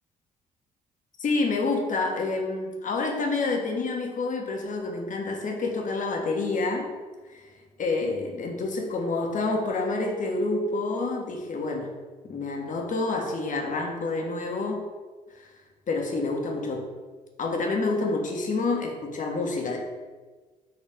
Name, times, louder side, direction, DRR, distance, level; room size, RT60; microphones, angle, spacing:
voice 1, 1.2-6.9 7.3-7.5 7.8-11.9 12.2-14.8 15.3-15.5 15.9-16.9 17.4-19.8, left 3 dB, 40° left, 2 dB, 1.4 m, -28 dB
8.9 x 3.9 x 3.6 m, 1.3 s
figure-of-eight pair, 45°, 20 cm